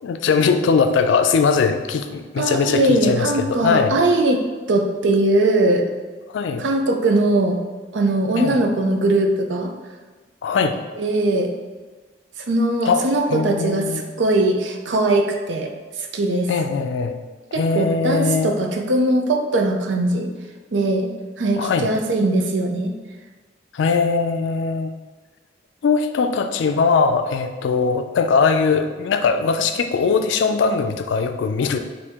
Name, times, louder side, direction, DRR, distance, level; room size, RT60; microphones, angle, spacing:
voice 1, 0.0-4.0 6.3-6.6 8.3-8.6 10.4-10.8 12.9-13.1 13.3-14.0 16.5-17.2 17.5-18.5 21.6-21.9 23.7-24.9 25.8-31.8, left 5 dB, 80° left, 7 dB, 0.3 m, -20 dB
voice 2, 2.4-5.9 6.6-7.6 7.9-9.7 11.0-11.5 12.4-15.7 16.0-16.5 17.5-20.3 20.7-21.1 21.4-23.0, right 2 dB, 80° right, 4 dB, 0.5 m, -20 dB
3.5 x 2.7 x 4.4 m, 1.3 s
head